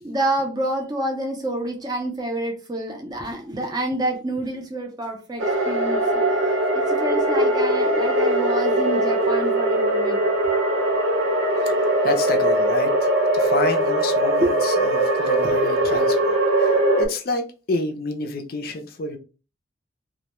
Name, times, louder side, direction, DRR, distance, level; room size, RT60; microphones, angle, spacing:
voice 1, 0.0-10.2 14.4-14.6 15.4-16.0, right 1 dB, 20° right, 0.5 m, -28 dB
sound 1, 5.4-17.1, right 1 dB, 85° right, 0.6 m, -21 dB
voice 2, 11.6-17.4 17.7-19.2, left 2 dB, 50° left, 0.4 m, -29 dB
2.2 x 2.1 x 2.9 m
head